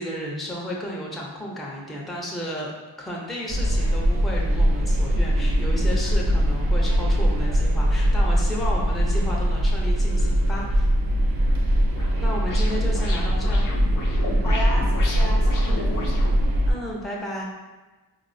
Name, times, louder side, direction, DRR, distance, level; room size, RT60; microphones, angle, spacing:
voice 1, 0.0-2.7 3.0-10.9 12.2-13.7 15.7-16.0 16.7-17.4, equal, ahead, -3 dB, 0.5 m, -33 dB
sound 1, 3.5-16.7, equal, 55° right, 0.5 m, -21 dB
sound 2, 11.4-16.3, left 2 dB, 50° left, 0.5 m, -34 dB
voice 2, 14.4-16.3, left 1 dB, 70° left, -3 dB, 0.8 m, -34 dB
4.1 x 2.0 x 2.5 m, 1.2 s
wide cardioid pair, 50°, 43 cm